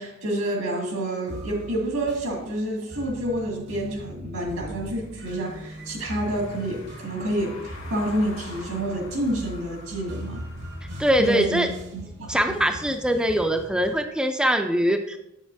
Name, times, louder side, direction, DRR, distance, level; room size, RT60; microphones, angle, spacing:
voice 1, 0.0-10.4 11.2-11.7 11.9-12.5, right 1 dB, 85° right, -1 dB, 2.1 m, -28 dB
sound 1, 1.3-14.0, right 1 dB, 60° right, 0.9 m, -40 dB
Car passing by / Engine, 4.5-11.3, left 2 dB, 75° left, 1.6 m, -45 dB
voice 2, 11.0-11.7 12.3-15.2, equal, 5° right, 5 dB, 0.4 m, -22 dB
7.8 x 7.2 x 2.6 m, 0.88 s
head